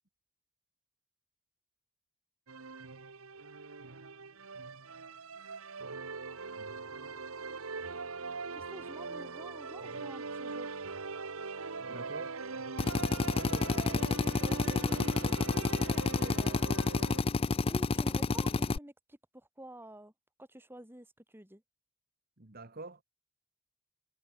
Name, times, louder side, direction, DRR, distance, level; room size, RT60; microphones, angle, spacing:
sound 1, 2.5-17.2, right 4 dB, 90° right, 1.5 m, -41 dB
voice 1, 8.5-10.7 13.6-16.9 17.7-20.1 20.4-21.6, right 1 dB, 10° right, 3.1 m, -50 dB
voice 2, 11.9-12.4 13.3-13.9 22.4-23.0, right 2 dB, 45° right, 1.6 m, -46 dB
Drill, 12.8-18.8, left 3 dB, 25° left, 0.4 m, -30 dB
head